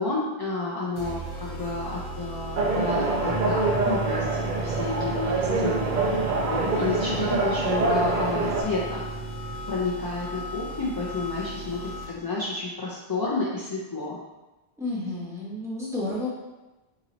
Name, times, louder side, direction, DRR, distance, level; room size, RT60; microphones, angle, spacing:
voice 1, 0.0-4.3 4.6-9.1 9.5-14.2, left 3 dB, 35° left, -7 dB, 0.4 m, -31 dB
sound 1, 1.0-12.3, right 1 dB, 60° left, 1.1 m, -37 dB
sound 2, 2.6-8.6, right 3 dB, 60° right, 0.6 m, -25 dB
sound 3, 3.3-9.5, right 3 dB, 25° right, 0.7 m, -37 dB
voice 2, 14.8-16.3, left 2 dB, 5° right, -8 dB, 1.0 m, -31 dB
2.9 x 2.9 x 3.9 m, 1.1 s
omnidirectional pair, 1.1 m